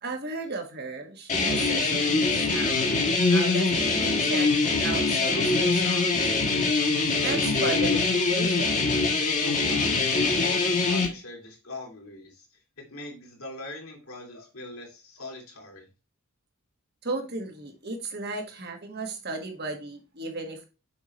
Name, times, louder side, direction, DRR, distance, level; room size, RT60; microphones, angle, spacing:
voice 1, 0.0-2.9 3.3-4.5 4.8-6.8 7.2-8.9 17.0-20.6, right 3 dB, 50° right, 1.7 m, -35 dB
sound 1, 1.3-11.1, left 3 dB, 35° left, 1.4 m, -23 dB
voice 2, 9.4-15.9, left 2 dB, 80° left, 2.7 m, -41 dB
7.1 x 5.7 x 3.1 m
head